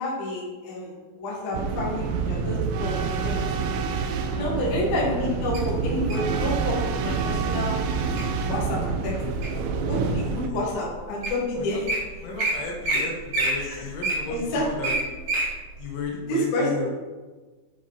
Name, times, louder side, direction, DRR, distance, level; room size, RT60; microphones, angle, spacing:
voice 1, 0.0-3.5 3.8-3.9 4.3-7.8 8.5-9.1 9.8-11.8 13.6-13.8 14.3-14.6 16.3-16.7, left 1 dB, 55° left, -5 dB, 2.5 m, -29 dB
sound 1, 1.5-10.5, right 5 dB, 85° right, 2.8 m, -27 dB
Wild animals, 5.5-6.3 7.0-7.3 7.8-8.2 8.7-9.7 10.3-10.4 11.0-11.1 11.2-11.4 11.7-12.0 12.4-12.5 12.8-13.0 13.3-15.5 15.9-16.0, right 2 dB, 55° right, 2.9 m, -26 dB
voice 2, 12.2-15.0 15.8-16.9, left 3 dB, 85° left, 0 dB, 3.5 m, -34 dB
7.9 x 5.2 x 3.8 m, 1.3 s
omnidirectional pair, 5.4 m